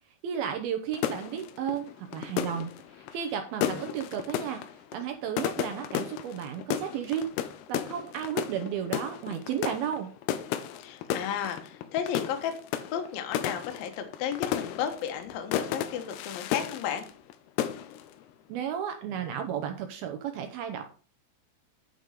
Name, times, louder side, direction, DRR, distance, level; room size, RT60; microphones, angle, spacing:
voice 1, 0.2-4.6 4.9-7.3 7.7-10.1 18.5-20.8, right 8 dB, 75° right, 6 dB, 2.3 m, -33 dB
sound 1, 0.9-17.3 17.6-18.1, left 11 dB, 90° left, 2.4 m, -34 dB
voice 2, 10.8-12.5 12.9-17.0, left 8 dB, 65° left, 5 dB, 2.7 m, -33 dB
9.7 x 5.5 x 5.0 m, 0.40 s
omnidirectional pair, 5.3 m